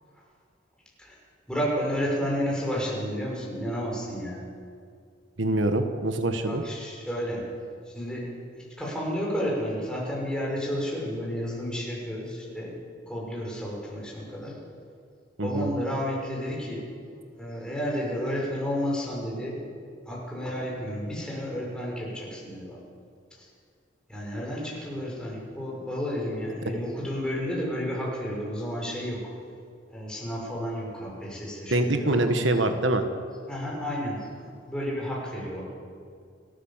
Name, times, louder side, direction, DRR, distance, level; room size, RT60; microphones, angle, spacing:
voice 1, 1.5-4.4 6.4-7.5 7.9-8.3 8.8-12.8 13.1-14.6 15.4-16.9 17.4-19.6 20.1-22.8 23.4-23.5 24.1-29.2 29.9-32.2 33.5-35.6, equal, 5° left, -3 dB, 6.3 m, -31 dB
voice 2, 5.4-6.6 15.4-15.7 31.7-33.1, right 1 dB, 75° right, 7 dB, 1.5 m, -24 dB
29.5 x 14.0 x 7.4 m, 2.3 s
head